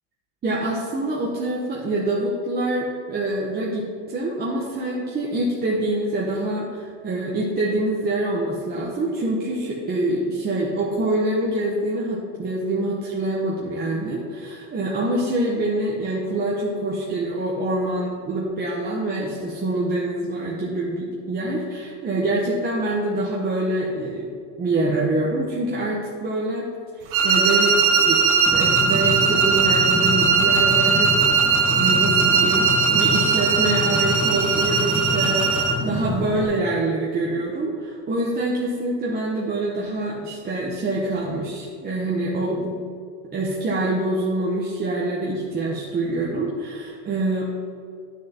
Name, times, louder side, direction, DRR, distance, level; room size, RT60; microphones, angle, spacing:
voice 1, 0.4-24.3 24.6-26.7 27.0-42.8 43.3-47.5, right 2 dB, 25° right, -4 dB, 1.0 m, -25 dB
sound 1, 27.1-35.8, right 5 dB, 60° right, 1.0 m, -19 dB
sound 2, 28.5-36.5, left 2 dB, 10° left, 1.0 m, -29 dB
9.6 x 6.5 x 2.9 m, 2.3 s
supercardioid pair, 120°, 39 cm